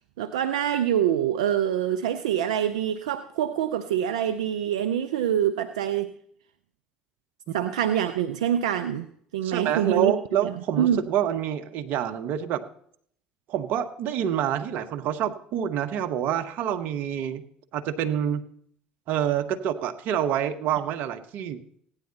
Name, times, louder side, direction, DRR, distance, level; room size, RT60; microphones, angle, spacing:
voice 1, 0.2-6.1 7.5-9.1 9.3-10.1 10.4-11.0, right 10 dB, 80° right, 9 dB, 0.6 m, -25 dB
voice 2, 9.4-12.6 13.5-17.4 17.7-18.4 19.1-21.6, right 9 dB, 60° right, 8 dB, 1.2 m, -27 dB
16.0 x 9.9 x 4.1 m, 0.64 s
hypercardioid pair, 65°, 4 cm